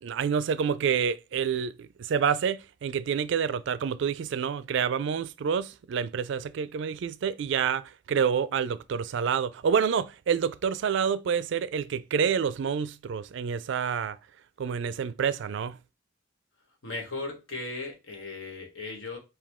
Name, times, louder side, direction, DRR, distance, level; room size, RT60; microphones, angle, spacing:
voice 1, 0.0-14.2 14.6-15.8, right 7 dB, 65° right, 0.3 m, -28 dB
voice 2, 16.8-19.2, left 3 dB, 85° left, 1.4 m, -37 dB
4.8 x 2.3 x 3.6 m
head